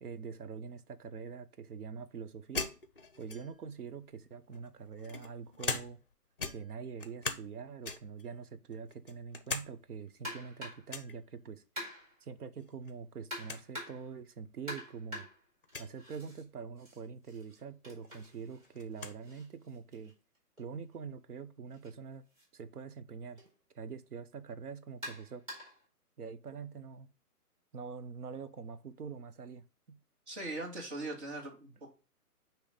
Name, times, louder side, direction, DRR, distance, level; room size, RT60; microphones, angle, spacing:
voice 1, 0.0-2.7 3.2-6.0 6.5-11.6 12.2-15.3 15.8-20.1 20.6-22.2 22.5-23.4 23.7-25.4 26.2-27.1 27.7-29.6 29.9-30.0, right 6 dB, 70° right, 0.9 m, -44 dB
sound 1, 2.5-3.7 4.5-6.1 6.4-7.5 7.8-8.2 8.7-9.7 10.0-10.1 10.9-11.2 12.6-12.9 13.2-13.3 13.5-13.6 14.5-14.6 15.6-15.9 17.6-17.7 18.0-19.2, left 4 dB, 40° left, 0.5 m, -40 dB
sound 2, 10.2-10.9 11.8-12.2 13.3-14.1 14.7-16.4 16.8-20.6 21.7-21.9 22.3-22.4 23.4-23.5 25.0-25.8, left 1 dB, 25° right, 3.1 m, -46 dB
voice 2, 30.3-31.9, right 2 dB, 45° right, 2.2 m, -40 dB
8.5 x 3.1 x 5.1 m
hypercardioid pair, 170°, 46 cm